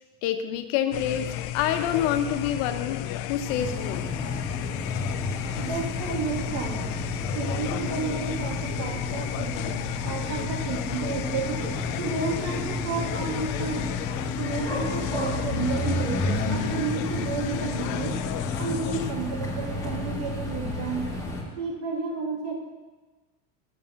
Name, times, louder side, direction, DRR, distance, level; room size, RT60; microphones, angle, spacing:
voice 1, 0.2-4.1, left 10 dB, 75° left, 8 dB, 0.9 m, -27 dB
sound 1, 0.9-19.1, left 12 dB, 55° left, 0.5 m, -33 dB
sound 2, 3.5-21.4, left 1 dB, 10° left, 1.5 m, -32 dB
voice 2, 5.6-6.9 7.3-13.9 14.4-18.1 18.6-21.1 21.6-22.5, right 4 dB, 80° right, 0 dB, 2.2 m, -32 dB
7.0 x 6.5 x 6.9 m, 1.3 s
cardioid pair, 160°, 39 cm